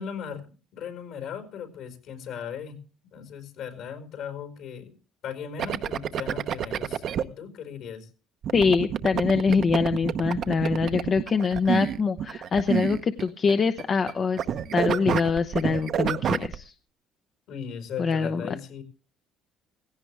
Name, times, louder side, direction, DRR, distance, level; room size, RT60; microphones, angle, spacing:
voice 1, 0.0-4.9 5.2-8.1 17.5-18.8, left 7 dB, 70° left, 8 dB, 5.0 m, -38 dB
sound 1, 5.6-7.2 8.4-14.1 14.4-16.5, right 9 dB, 50° right, 0.8 m, -28 dB
voice 2, 8.5-14.4 14.7-16.7 18.0-18.4, left 5 dB, 35° left, 9 dB, 0.8 m, -24 dB
17.5 x 16.5 x 3.4 m, 0.35 s
cardioid pair, 125°, 0 cm